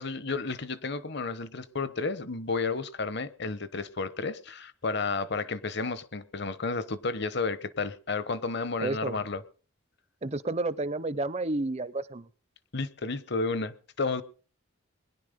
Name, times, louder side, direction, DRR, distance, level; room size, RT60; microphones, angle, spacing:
voice 1, 0.0-9.4 12.7-14.2, left 4 dB, 50° left, 1.0 m, -32 dB
voice 2, 8.8-9.2 10.2-12.3, right 2 dB, 30° right, 0.6 m, -31 dB
21.0 x 11.0 x 5.2 m
head